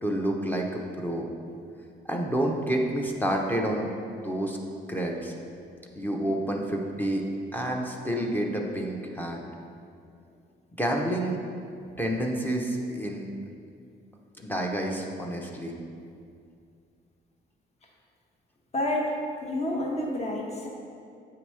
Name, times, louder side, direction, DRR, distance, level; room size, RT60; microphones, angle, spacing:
voice 1, 0.0-1.3 2.0-3.9 4.2-4.6 4.9-5.3 6.0-7.2 7.5-9.4 10.8-11.4 12.0-13.3 14.4-15.8, right 1 dB, 10° left, 0 dB, 0.7 m, -29 dB
voice 2, 18.7-19.1 19.4-20.7, left 1 dB, 35° left, -1 dB, 1.1 m, -29 dB
8.2 x 2.9 x 4.7 m, 2.3 s
cardioid pair, 90°, 20 cm